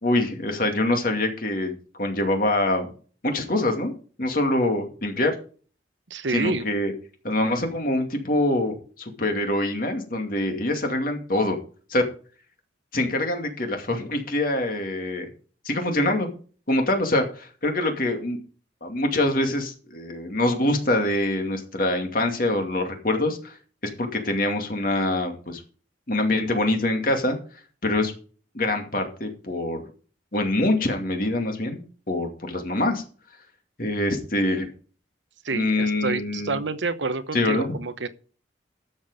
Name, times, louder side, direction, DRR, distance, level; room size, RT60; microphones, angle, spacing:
voice 1, 0.0-2.9 3.2-3.9 4.2-5.3 6.3-6.9 7.2-11.6 11.9-12.0 12.9-15.3 15.6-16.3 16.7-18.4 18.8-23.5 24.0-25.6 26.1-27.4 27.8-28.1 28.5-29.8 30.3-33.0 33.8-34.7 35.5-36.6 37.3-37.7, left 1 dB, 50° left, 2.4 m, -24 dB
voice 2, 6.1-6.7 35.4-38.1, right 3 dB, 85° right, 1.0 m, -28 dB
12.5 x 7.3 x 5.1 m
head